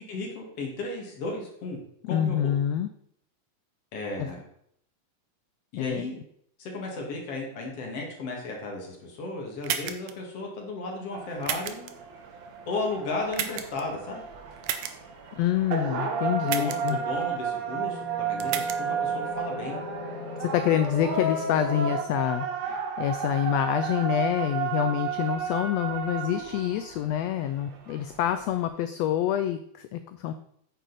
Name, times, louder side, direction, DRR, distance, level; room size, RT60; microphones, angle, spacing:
voice 1, 0.1-1.8 2.1-2.5 3.9-4.4 5.7-6.2 6.6-12.0 12.7-14.2 16.4-19.8, left 2 dB, 55° left, 0 dB, 2.8 m, -34 dB
voice 2, 2.1-2.9 4.2-4.3 5.7-6.1 15.4-17.0 20.4-30.3, left 11 dB, 85° left, 10 dB, 1.5 m, -27 dB
sound 1, 9.6-10.1 11.4-11.9 13.3-13.8 14.6-14.9 16.5-16.9 18.4-18.8, right 10 dB, 85° right, 2.2 m, -31 dB
sound 2, 11.1-28.7, right 5 dB, 65° right, 2.3 m, -32 dB
sound 3, 17.6-22.0, left 6 dB, 70° left, 1.5 m, -40 dB
9.1 x 6.7 x 4.1 m, 0.70 s
omnidirectional pair, 3.5 m